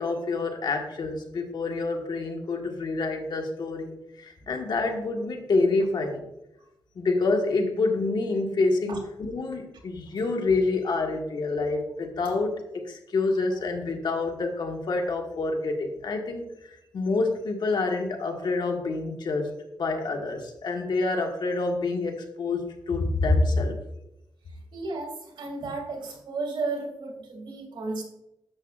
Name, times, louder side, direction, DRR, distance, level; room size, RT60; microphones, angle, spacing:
voice 1, 0.0-6.2 6.9-19.5 19.8-23.7, left 3 dB, 65° left, 3 dB, 1.5 m, -27 dB
voice 2, 24.7-28.0, right 3 dB, 85° right, 1 dB, 2.5 m, -33 dB
10.5 x 7.4 x 2.4 m, 0.86 s
cardioid pair, 95°, 8 cm